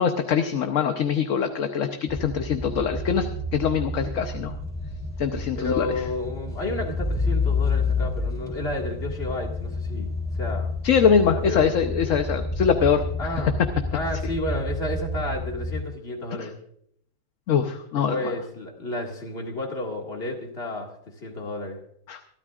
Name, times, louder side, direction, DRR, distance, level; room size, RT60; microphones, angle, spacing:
voice 1, 0.0-4.5 5.2-5.9 10.8-13.0 16.4-16.5 17.5-18.3 22.1-22.2, left 7 dB, 55° left, 6 dB, 1.1 m, -23 dB
sound 1, 2.1-15.7, left 2 dB, ahead, 4.3 m, -29 dB
voice 2, 5.5-10.7 11.3-11.7 13.2-13.6 13.9-16.5 18.1-20.9 21.2-21.8, left 2 dB, 35° left, 1 dB, 2.2 m, -31 dB
25.0 x 12.5 x 2.4 m, 0.68 s
omnidirectional pair, 1.8 m